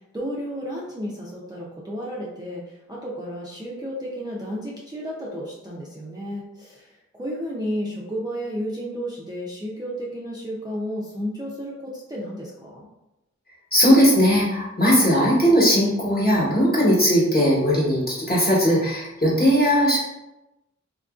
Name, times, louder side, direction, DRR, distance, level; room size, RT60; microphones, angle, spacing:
voice 1, 0.1-12.9, equal, 15° right, -6 dB, 0.4 m, -32 dB
voice 2, 13.7-20.0, equal, 30° left, -6 dB, 1.1 m, -18 dB
2.8 x 2.5 x 2.3 m, 0.96 s
wide cardioid pair, 55°, 30 cm